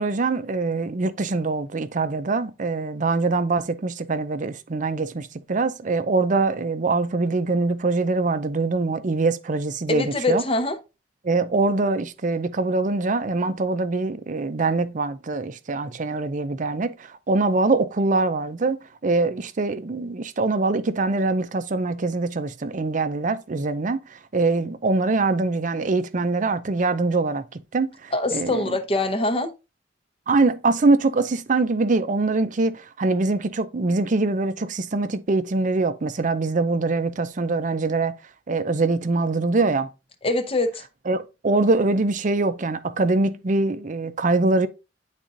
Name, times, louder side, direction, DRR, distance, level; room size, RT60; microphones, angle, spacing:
voice 1, 0.0-10.4 11.2-28.8 30.3-38.2 38.5-39.9 41.1-44.7, right 3 dB, 45° right, 0.5 m, -23 dB
voice 2, 9.9-10.8 28.1-29.5 40.2-40.8, left 2 dB, 30° left, 0.8 m, -23 dB
10.0 x 4.1 x 2.5 m
head